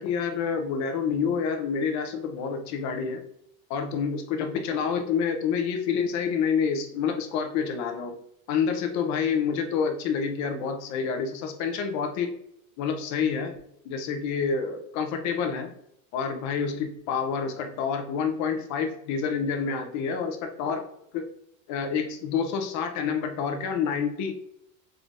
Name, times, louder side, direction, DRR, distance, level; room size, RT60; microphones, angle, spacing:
voice 1, 0.0-3.2 3.7-8.2 8.5-12.3 12.8-13.6 13.8-15.7 16.1-20.8 21.1-21.3 21.7-24.3, left 6 dB, 40° left, 5 dB, 0.6 m, -28 dB
3.7 x 3.4 x 2.5 m, 0.75 s
supercardioid pair, 150°, 43 cm